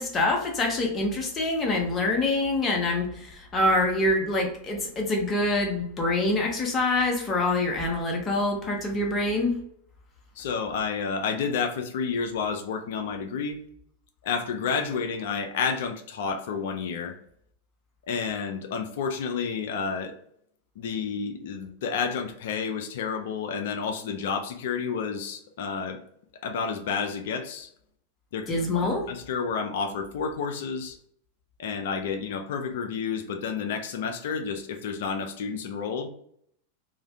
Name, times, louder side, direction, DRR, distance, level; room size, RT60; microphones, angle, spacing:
voice 1, 0.0-9.6 28.5-29.1, left 2 dB, 20° left, 0 dB, 0.7 m, -25 dB
voice 2, 10.4-13.6 14.2-17.2 18.1-20.1 20.8-26.0 26.4-27.7 28.3-28.6 29.1-31.0 31.6-36.1, left 6 dB, 55° left, 6 dB, 0.4 m, -30 dB
2.4 x 2.1 x 2.6 m, 0.68 s
figure-of-eight pair, 90°, 0 cm